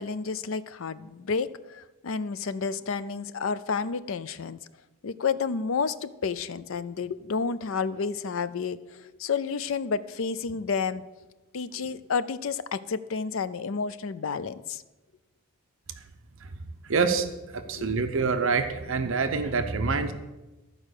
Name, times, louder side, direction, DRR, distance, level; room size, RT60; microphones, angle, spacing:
voice 1, 0.0-4.6 5.0-11.0 11.5-14.8 17.6-18.0, left 5 dB, 65° left, 14 dB, 0.5 m, -30 dB
voice 2, 16.8-20.1, right 4 dB, 60° right, 7 dB, 0.7 m, -26 dB
13.5 x 5.0 x 6.5 m, 1.1 s
head